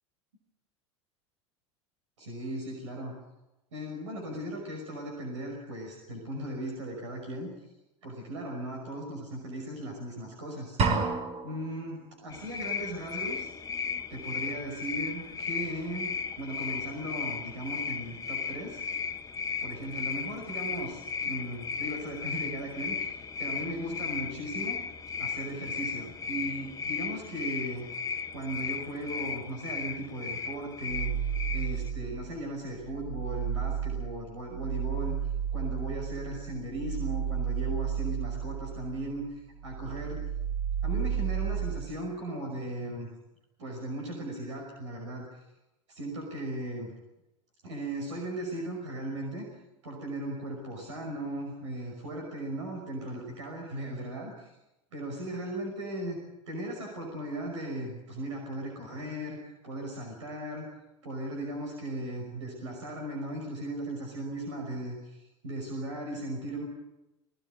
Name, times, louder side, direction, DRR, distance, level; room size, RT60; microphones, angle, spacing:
voice 1, 2.2-3.1 3.7-7.5 8.0-10.8 11.4-13.5 14.1-18.8 19.6-24.8 25.2-27.9 28.3-31.1 31.5-35.2 35.5-40.2 40.8-43.1 43.6-45.4 45.9-46.9 47.6-49.4 49.8-54.6 54.9-56.2 56.5-59.4 59.6-60.7 61.0-66.7, right 1 dB, 80° right, 1 dB, 5.7 m, -37 dB
sound 1, 10.8-11.8, right 4 dB, 45° right, 5.4 m, -28 dB
sound 2, 12.3-31.9, left 6 dB, 20° left, 1.3 m, -36 dB
sound 3, 30.9-32.3 32.7-39.3 39.6-41.9, right 8 dB, 65° right, 3.6 m, -33 dB
21.5 x 19.0 x 9.3 m, 0.96 s
hypercardioid pair, 85°, 15 cm